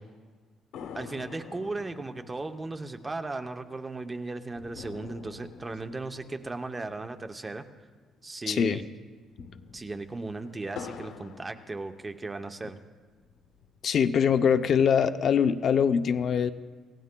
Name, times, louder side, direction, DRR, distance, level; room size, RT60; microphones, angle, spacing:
sound 1, 0.7-8.3 8.6-8.7 9.1-12.5 13.0-14.0, left 6 dB, 90° left, 1.1 m, -47 dB
voice 1, 0.9-7.6 8.2-8.9 9.7-12.8, right 3 dB, 15° right, 7 dB, 0.7 m, -36 dB
voice 2, 8.5-8.8 13.8-16.5, left 7 dB, 45° left, 10 dB, 0.5 m, -23 dB
27.5 x 17.0 x 2.2 m, 1.4 s
cardioid pair, 145°, 0 cm